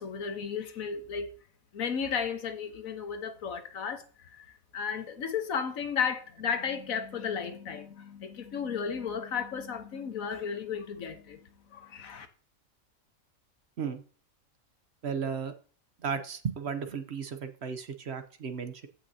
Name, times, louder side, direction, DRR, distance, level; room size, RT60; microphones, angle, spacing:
voice 1, 0.0-1.3 1.7-11.4 11.7-12.3, left 6 dB, 75° left, 1.5 m, -34 dB
voice 2, 15.0-15.5 16.0-18.9, right 6 dB, 55° right, 1.0 m, -34 dB
15.0 x 5.8 x 2.8 m
omnidirectional pair, 1.4 m